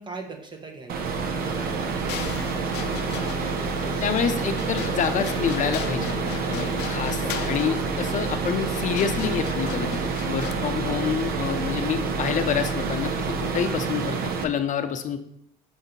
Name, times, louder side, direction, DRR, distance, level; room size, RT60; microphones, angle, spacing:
voice 1, 0.0-2.2 10.5-10.7, right 3 dB, 25° right, 3 dB, 1.0 m, -41 dB
sound 1, 0.9-14.4, right 5 dB, 60° right, 0.7 m, -28 dB
sound 2, 2.1-10.5, left 10 dB, 90° left, 0.5 m, -38 dB
sound 3, 2.6-9.1, equal, ahead, 1.1 m, -42 dB
voice 2, 4.0-6.2 6.5-13.1 13.4-15.2, left 8 dB, 50° left, 8 dB, 0.6 m, -27 dB
7.1 x 2.7 x 5.2 m, 0.76 s
cardioid pair, 110°, 17 cm